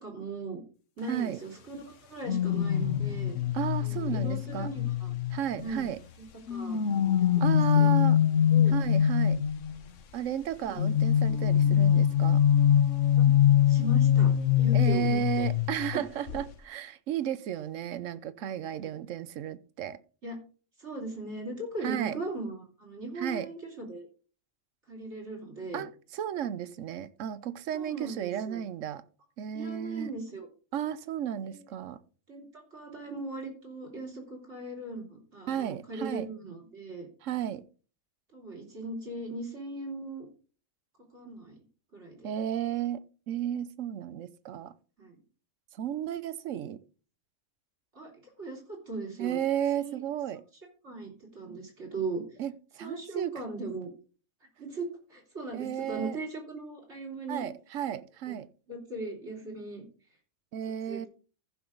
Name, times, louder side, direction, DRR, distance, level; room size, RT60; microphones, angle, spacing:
voice 1, 0.0-0.6 1.0-3.4 3.8-5.1 5.6-5.9 6.2-6.8 7.2-7.4 7.7-8.1 8.5-8.7 10.6-10.9 11.6-11.8 13.2-13.3 13.7-15.5 20.2-20.4 20.8-24.1 24.9-25.8 27.7-28.6 29.5-30.5 31.4-31.6 32.3-37.1 38.3-40.3 41.1-41.6 41.9-42.3 45.0-45.2 47.9-49.4 49.8-50.0 50.8-52.2 52.8-53.9 54.6-57.4 58.3-58.4 58.7-59.8 60.9-61.1, right 2 dB, 65° right, 3.8 m, -39 dB
voice 2, 1.1-1.4 3.5-4.7 5.3-6.0 7.4-8.2 8.7-9.4 10.1-12.4 14.7-20.0 21.8-22.2 23.2-23.5 25.7-29.0 29.4-30.1 30.7-32.0 35.5-36.3 37.2-37.6 42.2-43.0 43.3-44.7 45.8-46.8 49.2-50.4 52.4-53.3 55.5-56.2 57.3-58.5 60.5-61.1, right 10 dB, 85° right, 1.1 m, -33 dB
sound 1, 2.3-5.9 6.5-9.7 10.8-16.0 16.3-16.5, left 9 dB, 75° left, 1.2 m, -24 dB
14.5 x 5.9 x 3.8 m
omnidirectional pair, 1.3 m